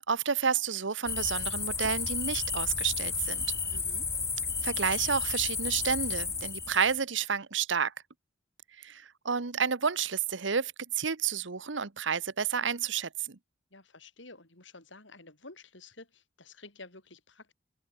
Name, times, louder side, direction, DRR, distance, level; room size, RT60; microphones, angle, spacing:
voice 1, 0.1-3.4 4.6-7.9 8.8-13.4, right 6 dB, 75° right, 1.1 m, -30 dB
sound 1, 1.1-7.0, left 5 dB, 15° left, 1.6 m, -32 dB
voice 2, 3.7-4.1 13.7-17.5, left 3 dB, 70° left, 6.8 m, -51 dB
open air
head